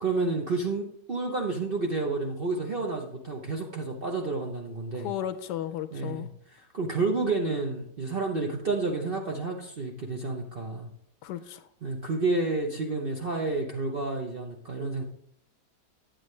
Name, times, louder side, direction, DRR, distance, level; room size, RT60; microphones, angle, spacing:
voice 1, 0.0-5.1 5.9-6.3 6.6-10.9 11.8-15.0, right 3 dB, 50° right, 1 dB, 0.7 m, -30 dB
voice 2, 4.9-6.3 11.2-11.7, left 11 dB, 75° left, 10 dB, 1.1 m, -34 dB
9.0 x 8.6 x 3.2 m, 0.69 s
omnidirectional pair, 1.9 m